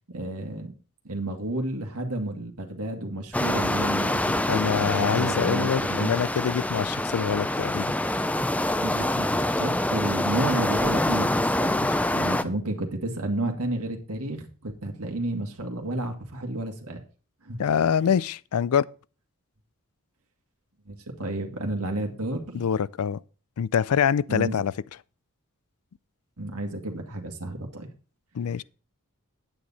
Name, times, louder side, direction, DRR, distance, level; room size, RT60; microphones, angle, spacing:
voice 1, 0.1-0.7 1.0-6.2 8.8-17.0 17.4-17.6 18.0-18.1 20.9-22.7 24.3-24.5 26.4-27.9, right 1 dB, 90° right, 1.9 m, -31 dB
sound 1, 3.3-12.4, left 1 dB, 5° left, 0.5 m, -26 dB
voice 2, 4.5-7.9 17.6-18.9 22.5-23.2 23.6-24.7 28.3-28.6, left 7 dB, 90° left, 0.4 m, -25 dB
9.5 x 9.0 x 4.2 m
head